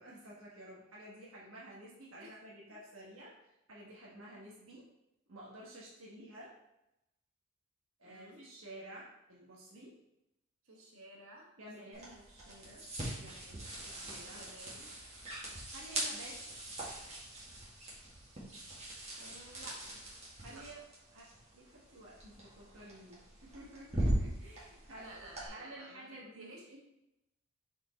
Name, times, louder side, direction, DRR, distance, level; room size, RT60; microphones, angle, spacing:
voice 1, 0.0-3.3 3.7-4.8 5.3-6.5 8.0-9.9 11.6-12.2 13.1-14.4 15.7-16.3 20.4-20.8 21.1-21.3 21.5-25.1 25.5-26.5, right 1 dB, 65° right, -5 dB, 1.3 m, -52 dB
voice 2, 8.0-8.4 10.7-12.8 14.3-14.9 19.2-20.0 20.4-20.6 25.0-26.8, right 1 dB, 85° right, -2 dB, 1.6 m, -54 dB
sound 1, 11.9-25.5, right 1 dB, 30° right, 1.8 m, -41 dB
5.3 x 4.5 x 4.1 m, 0.88 s
head